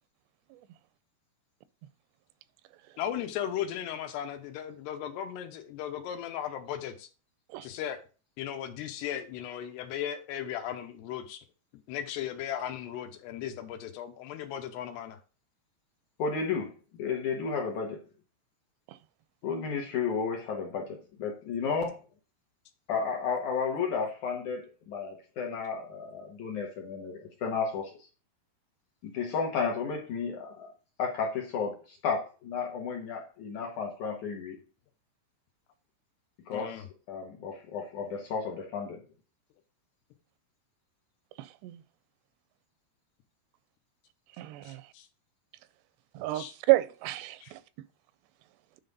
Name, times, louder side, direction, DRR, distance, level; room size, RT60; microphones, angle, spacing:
voice 1, 3.0-7.1 7.6-8.0 8.4-11.4 11.9-15.2 36.5-36.9 44.6-45.1 46.3-46.5 47.4-47.5, left 10 dB, 85° left, 3.0 m, -36 dB
voice 2, 16.2-16.7 17.0-18.0 19.4-22.0 22.9-27.9 29.0-30.7 31.0-34.6 36.5-39.0, left 5 dB, 65° left, 2.0 m, -33 dB
voice 3, 41.4-41.8 44.4-44.8 46.2-47.6, right 19 dB, 85° right, 2.6 m, -29 dB
9.5 x 4.0 x 5.3 m
omnidirectional pair, 4.8 m